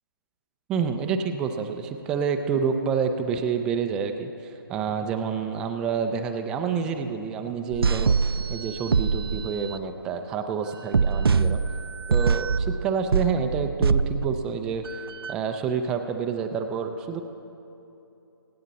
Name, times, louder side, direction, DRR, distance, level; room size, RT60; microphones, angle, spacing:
voice 1, 0.7-4.3 4.7-8.2 8.5-11.6 12.1-15.0 15.3-17.2, right 6 dB, 5° right, 6 dB, 0.3 m, -28 dB
sound 1, 7.7-9.8 10.9-15.3, right 5 dB, 80° right, 0.5 m, -24 dB
24.0 x 9.4 x 4.0 m, 2.9 s
hypercardioid pair, 155°, 12 cm